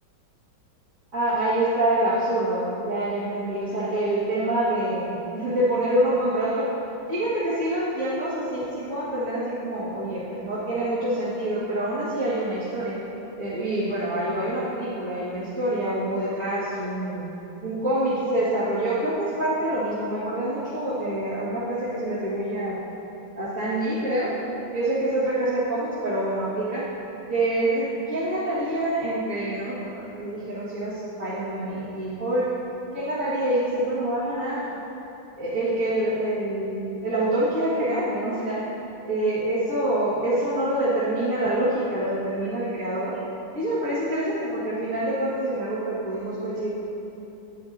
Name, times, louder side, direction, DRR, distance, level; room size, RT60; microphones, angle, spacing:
voice 1, 1.1-6.7 7.1-13.0 13.4-17.3 17.6-22.8 23.4-24.4 24.7-26.9 27.3-32.5 32.9-34.8 35.4-38.6 39.0-43.2 43.5-46.7, right 1 dB, 45° right, -12 dB, 1.9 m, -26 dB
9.6 x 9.3 x 2.6 m, 3.0 s
omnidirectional pair, 2.2 m